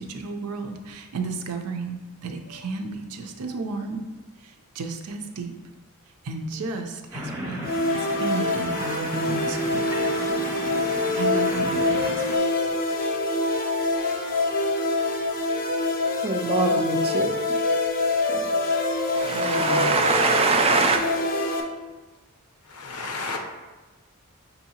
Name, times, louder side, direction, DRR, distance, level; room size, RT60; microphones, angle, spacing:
voice 1, 0.0-4.0 4.8-5.5 6.3-9.8 11.2-12.1 12.7-13.2, right 3 dB, 90° right, 0.5 m, -33 dB
sound 1, 7.1-12.4, equal, 10° right, 0.7 m, -35 dB
sound 2, 7.6-21.6, left 2 dB, 40° left, 0.5 m, -25 dB
voice 2, 16.2-17.3 19.1-21.0, right 4 dB, 25° right, 0.3 m, -23 dB
voice 3, 19.3-20.0 22.7-23.4, left 3 dB, 90° left, 0.7 m, -31 dB
6.0 x 2.7 x 2.8 m
head